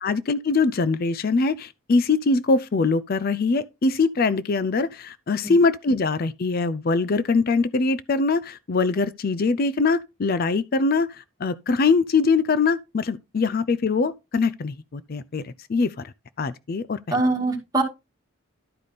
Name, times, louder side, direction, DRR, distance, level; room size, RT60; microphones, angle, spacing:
voice 1, 0.0-16.1 16.4-17.2, left 4 dB, 45° left, 0.4 m, -23 dB
voice 2, 17.1-17.8, right 2 dB, 15° right, 2.2 m, -23 dB
12.0 x 5.0 x 4.1 m
head